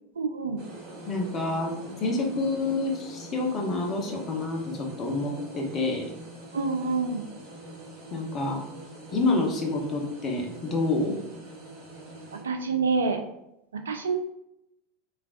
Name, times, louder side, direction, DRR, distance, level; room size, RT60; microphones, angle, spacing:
voice 1, 0.2-0.6 2.3-2.4 6.5-7.3 12.3-13.2 13.7-14.2, right 4 dB, 75° right, 5 dB, 0.4 m, -27 dB
sound 1, 0.6-12.4, right 2 dB, 55° right, 1.0 m, -44 dB
voice 2, 1.1-6.0 8.1-8.6 9.1-11.2, left 2 dB, 35° left, 1 dB, 0.7 m, -28 dB
3.3 x 2.4 x 2.4 m, 0.83 s
figure-of-eight pair, 85°, 0 cm